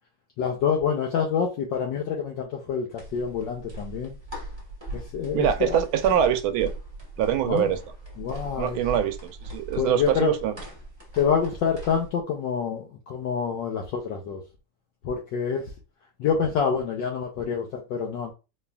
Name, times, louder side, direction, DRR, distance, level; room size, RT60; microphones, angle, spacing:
voice 1, 0.4-4.2 4.9-5.8 7.5-7.7 8.2-8.8 9.8-10.3 11.1-14.4 15.0-15.6 16.2-18.3, left 6 dB, 70° left, 1.2 m, -27 dB
sound 1, 3.0-12.1, right 2 dB, 15° right, 1.1 m, -39 dB
voice 2, 5.3-6.7 7.2-7.8 8.6-10.6, right 9 dB, 75° right, 1.3 m, -24 dB
4.3 x 3.3 x 2.3 m
omnidirectional pair, 2.4 m